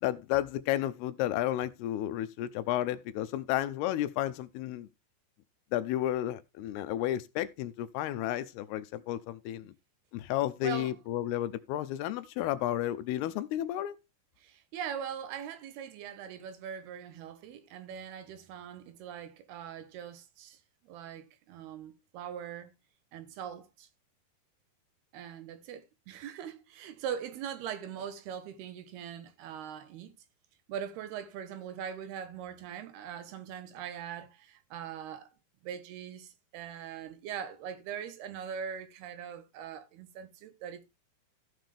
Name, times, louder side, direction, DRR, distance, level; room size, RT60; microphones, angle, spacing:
voice 1, 0.0-4.9 5.7-9.7 10.1-14.0, left 13 dB, 80° left, 2.6 m, -32 dB
voice 2, 10.6-10.9 14.4-20.6 20.9-22.7 23.1-23.9 25.1-30.1 30.7-35.3 35.6-40.8, right 8 dB, 75° right, 3.0 m, -41 dB
15.0 x 6.1 x 3.3 m
omnidirectional pair, 4.7 m